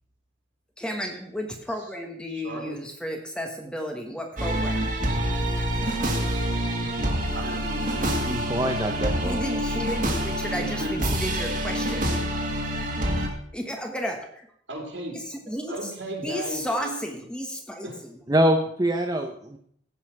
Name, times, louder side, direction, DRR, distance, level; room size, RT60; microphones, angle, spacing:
voice 1, 0.8-4.9 9.2-12.2 13.5-14.5 15.1-15.9 16.2-18.2, equal, 5° left, 3 dB, 1.3 m, -33 dB
voice 2, 2.3-2.8 7.3-7.9 10.6-11.0 14.7-15.2 15.7-17.1 17.8-18.0, right 1 dB, 75° right, 1 dB, 2.9 m, -35 dB
sound 1, 4.4-13.3, equal, 45° right, 1.9 m, -26 dB
voice 3, 8.3-9.4 18.3-19.6, right 1 dB, 20° right, 3 dB, 0.7 m, -24 dB
15.5 x 5.6 x 5.8 m, 0.65 s
head